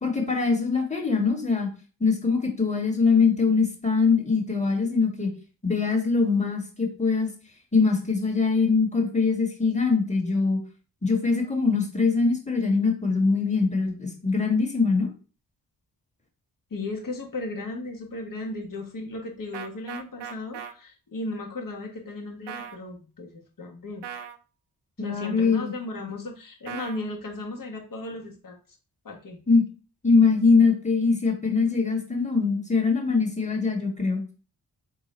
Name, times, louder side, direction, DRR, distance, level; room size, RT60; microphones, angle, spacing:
voice 1, 0.0-1.7 2.0-5.3 5.6-7.3 7.7-10.6 11.0-15.1 25.0-25.7 29.5-29.6 30.0-34.2, left 4 dB, 15° left, 2 dB, 1.5 m, -22 dB
voice 2, 16.7-24.1 25.0-28.6 29.0-29.4, left 2 dB, 50° left, 1 dB, 1.4 m, -36 dB
sound 1, 19.5-20.7 22.5-22.8 24.0-24.4 26.7-27.0, right 8 dB, 80° right, 0.6 m, -37 dB
3.7 x 2.2 x 4.3 m, 0.35 s
cardioid pair, 50°, 41 cm